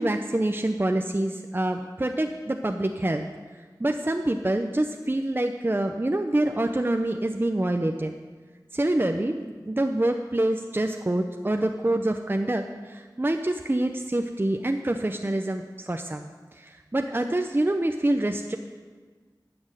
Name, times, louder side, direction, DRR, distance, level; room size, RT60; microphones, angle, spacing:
voice 1, 0.0-3.3 3.8-8.1 8.7-18.6, right 1 dB, 30° right, 5 dB, 0.6 m, -26 dB
13.0 x 6.1 x 8.9 m, 1.4 s
wide cardioid pair, 55°, 8 cm